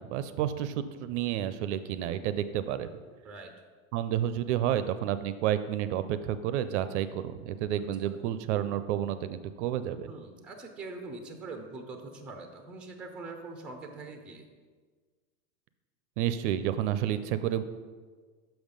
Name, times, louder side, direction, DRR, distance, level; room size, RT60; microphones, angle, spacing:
voice 1, 0.0-2.9 3.9-10.1 16.2-17.6, right 11 dB, 55° right, 12 dB, 0.5 m, -30 dB
voice 2, 10.1-14.5, right 3 dB, ahead, 5 dB, 0.4 m, -43 dB
6.0 x 5.3 x 5.1 m, 1.5 s
supercardioid pair, 130°, 43 cm